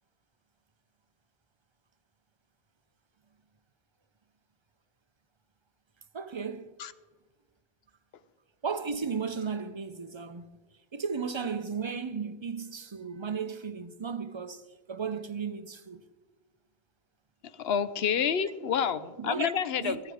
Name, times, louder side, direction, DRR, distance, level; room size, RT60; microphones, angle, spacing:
voice 1, 6.1-6.7 8.6-10.6 10.9-16.0 19.2-19.5 19.8-20.0, right 5 dB, 30° right, 0.6 m, -35 dB
voice 2, 17.6-20.0, left 7 dB, 70° left, 0.9 m, -28 dB
17.0 x 13.0 x 4.9 m
omnidirectional pair, 1.1 m